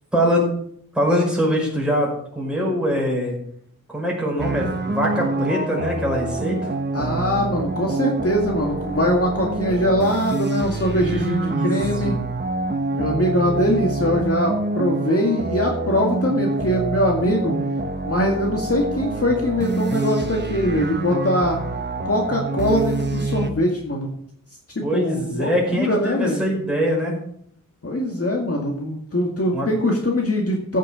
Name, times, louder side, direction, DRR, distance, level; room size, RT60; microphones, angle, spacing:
voice 1, 0.1-0.5 0.9-3.4 3.9-6.7 11.0-11.7 12.0-12.2 24.8-27.2 29.5-29.7, equal, 5° right, -3 dB, 5.4 m, -23 dB
sound 1, 4.4-23.5, right 3 dB, 30° right, 1.1 m, -26 dB
voice 2, 6.9-12.2 12.9-17.6 18.0-21.6 22.0-24.1 24.8-26.5 27.8-30.8, left 1 dB, 40° left, -1 dB, 2.0 m, -22 dB
15.0 x 6.6 x 5.0 m, 0.66 s
wide cardioid pair, 95°, 35 cm